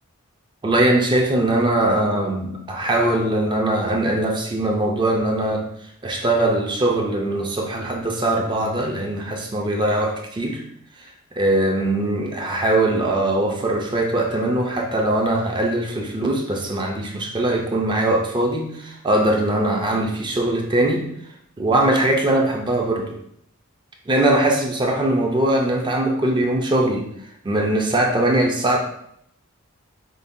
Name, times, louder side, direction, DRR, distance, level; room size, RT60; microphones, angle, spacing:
voice 1, 0.6-5.7 6.0-10.6 11.0-21.1 21.6-23.2 24.1-27.1 27.4-28.8, right 1 dB, 20° right, 1 dB, 0.4 m, -21 dB
5.1 x 2.2 x 2.5 m, 0.71 s
head